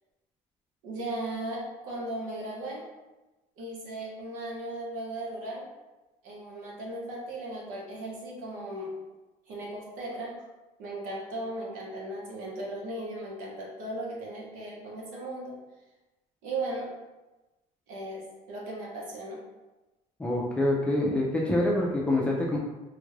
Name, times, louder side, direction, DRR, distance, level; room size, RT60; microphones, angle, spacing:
voice 1, 0.8-2.8 3.6-5.7 6.2-8.9 9.5-10.4 10.8-15.5 16.4-17.0 17.9-19.4, right 1 dB, 90° right, -3 dB, 1.1 m, -37 dB
voice 2, 20.2-22.6, left 1 dB, 10° left, -4 dB, 0.4 m, -26 dB
3.5 x 2.4 x 3.1 m, 1.1 s
cardioid pair, 170°, 14 cm